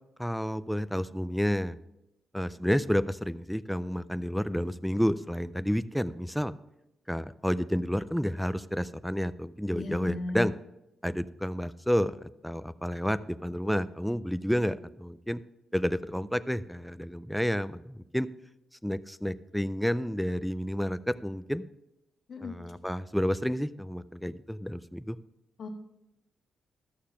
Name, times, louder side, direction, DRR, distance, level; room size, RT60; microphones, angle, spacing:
voice 1, 0.2-1.8 2.3-6.5 7.1-10.5 11.0-15.4 15.7-18.3 18.8-21.6 22.4-25.2, equal, ahead, 14 dB, 0.4 m, -30 dB
voice 2, 9.7-10.5 22.3-22.5 25.6-25.7, left 2 dB, 45° left, 1 dB, 1.7 m, -35 dB
13.5 x 6.7 x 5.8 m, 0.89 s
wide cardioid pair, 155°, 0 cm